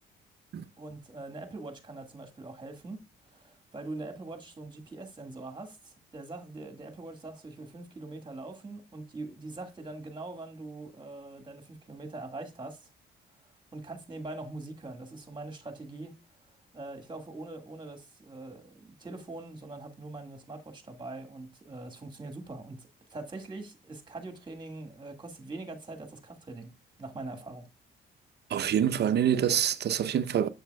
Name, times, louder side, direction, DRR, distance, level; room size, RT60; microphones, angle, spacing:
voice 1, 0.8-3.0 3.3-12.8 13.7-16.2 16.7-26.7 27.0-27.7, right 2 dB, 25° right, 1.8 m, -42 dB
voice 2, 28.5-30.5, right 9 dB, 55° right, 0.7 m, -26 dB
7.3 x 7.2 x 2.3 m
cardioid pair, 90°, 20 cm